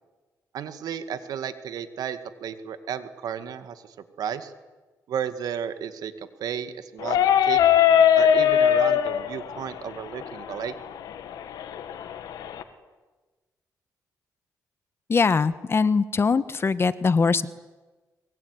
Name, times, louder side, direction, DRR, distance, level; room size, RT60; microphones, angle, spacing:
voice 1, 0.5-4.5 5.1-6.1 6.4-7.6 8.2-10.7, right 8 dB, 75° right, 10 dB, 2.1 m, -33 dB
sound 1, 7.0-12.6, left 9 dB, 85° left, 2.0 m, -22 dB
voice 2, 15.1-17.5, left 4 dB, 40° left, 14 dB, 1.3 m, -22 dB
23.0 x 23.0 x 9.8 m, 1.2 s
cardioid pair, 85°, 7 cm